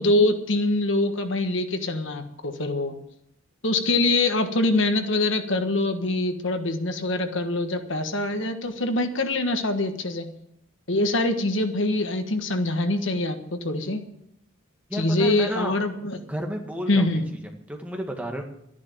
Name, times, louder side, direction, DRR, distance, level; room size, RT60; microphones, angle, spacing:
voice 1, 0.0-2.9 3.6-10.3 10.9-14.0 14.9-16.2 16.9-17.3, left 2 dB, 65° left, 7 dB, 1.4 m, -24 dB
voice 2, 14.9-15.8 16.3-18.4, equal, 5° right, 2 dB, 1.8 m, -32 dB
12.5 x 10.5 x 7.4 m, 0.78 s
head